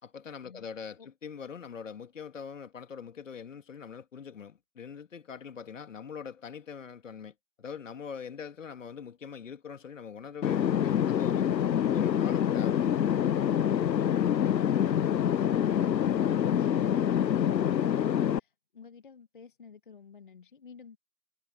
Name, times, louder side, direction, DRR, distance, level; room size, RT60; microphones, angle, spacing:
voice 1, 0.0-11.5 11.9-13.1, left 7 dB, 50° left, 2.5 m, -43 dB
sound 1, 10.4-18.4, left 9 dB, 80° left, 0.7 m, -26 dB
voice 2, 15.2-21.0, left 6 dB, 30° left, 1.0 m, -50 dB
figure-of-eight pair, 155°, 50 cm